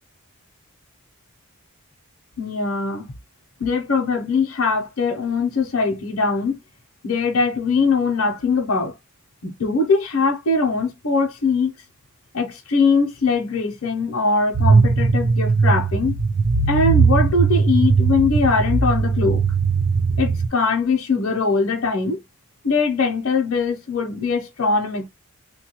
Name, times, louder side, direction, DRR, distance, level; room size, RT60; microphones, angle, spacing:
voice 1, 2.4-3.1 3.6-6.6 7.0-8.9 9.4-11.7 12.3-16.1 16.7-19.4 20.2-22.2 22.6-25.1, left 4 dB, 65° left, 0.7 m, -21 dB
sound 1, 14.5-20.5, right 4 dB, 40° right, 0.3 m, -18 dB
3.3 x 2.3 x 2.8 m
head